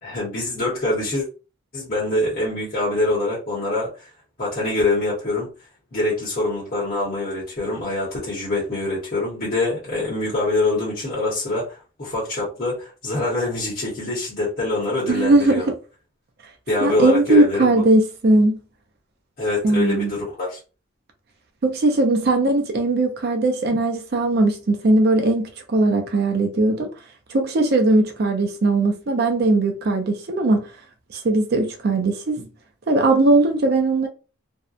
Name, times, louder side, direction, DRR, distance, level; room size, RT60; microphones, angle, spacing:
voice 1, 0.0-1.3 1.7-4.1 4.4-5.5 5.9-15.7 16.7-17.8 19.4-20.6, left 2 dB, 45° left, 0.9 m, -24 dB
voice 2, 15.1-15.7 16.8-18.6 19.6-20.1 21.6-26.9 27.3-30.6 31.1-32.5 32.9-34.1, right 2 dB, 50° right, 0.4 m, -19 dB
2.7 x 2.1 x 2.4 m
head